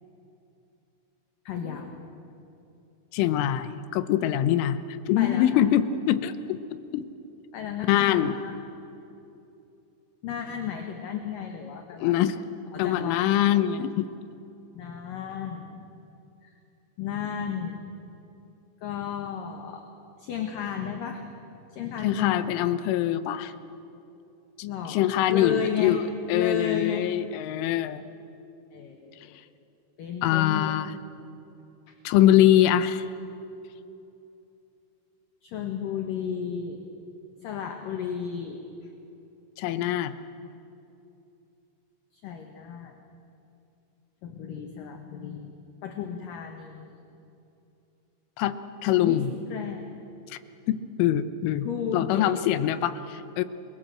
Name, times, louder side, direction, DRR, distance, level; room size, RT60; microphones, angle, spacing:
voice 1, 1.5-2.0 5.2-5.7 7.5-8.5 10.2-12.3 12.7-13.3 14.7-15.9 16.4-16.5 17.0-17.8 18.8-19.9 20.2-21.2 21.7-22.7 24.6-26.0 26.3-27.1 28.7-29.4 30.0-30.8 31.9-32.0 35.4-36.8 37.4-38.6 42.1-43.0 44.2-45.5 45.8-46.9 49.0-49.9 51.6-52.3, left 7 dB, 60° left, 4 dB, 2.5 m, -33 dB
voice 2, 3.1-4.8 5.1-6.6 6.9-7.0 7.9-8.3 12.0-12.4 12.8-14.1 22.0-23.5 24.9-26.0 26.3-28.0 30.2-30.9 32.0-33.0 39.6-40.1 48.4-49.3 50.7-51.7 51.9-53.4, left 12 dB, 85° left, 12 dB, 3.4 m, -23 dB
29.5 x 22.0 x 7.8 m, 2.8 s
omnidirectional pair, 5.5 m